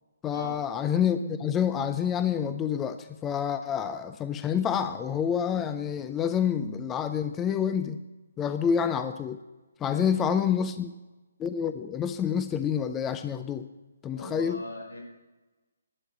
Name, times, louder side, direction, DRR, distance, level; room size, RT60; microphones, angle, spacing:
voice 1, 0.2-8.0 8.4-9.4 9.8-10.9 11.4-13.6 14.0-14.7, left 8 dB, 15° left, 10 dB, 0.5 m, -28 dB
voice 2, 9.8-10.5 14.1-15.0, left 1 dB, 85° left, -1 dB, 5.6 m, -40 dB
12.0 x 8.3 x 8.4 m, 1.1 s
figure-of-eight pair, 140°, 0 cm